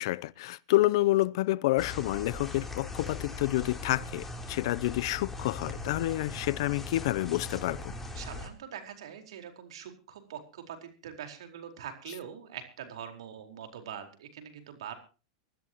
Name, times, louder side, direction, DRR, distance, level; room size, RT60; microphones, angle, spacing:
voice 1, 0.0-7.9, left 17 dB, 65° left, 0.6 m, -28 dB
sound 1, 1.8-8.5, left 2 dB, 10° left, 3.4 m, -40 dB
voice 2, 8.1-14.9, right 9 dB, 80° right, 4.5 m, -43 dB
24.0 x 13.5 x 3.0 m
hypercardioid pair, 120°, 3 cm